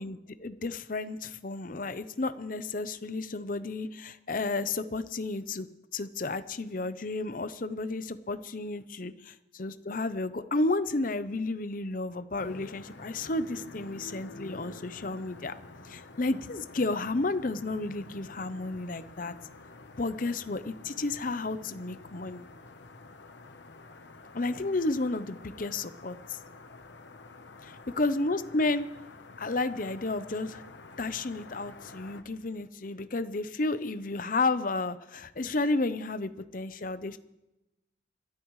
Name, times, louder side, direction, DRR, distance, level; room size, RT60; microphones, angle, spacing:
voice 1, 0.0-15.5 15.8-19.3 20.0-22.5 24.3-26.4 27.6-28.9 29.4-30.6 31.0-37.2, left 2 dB, 45° left, 12 dB, 0.7 m, -32 dB
sound 1, 12.4-32.2, left 2 dB, 70° left, 1.0 m, -49 dB
26.0 x 12.5 x 3.2 m, 0.96 s
head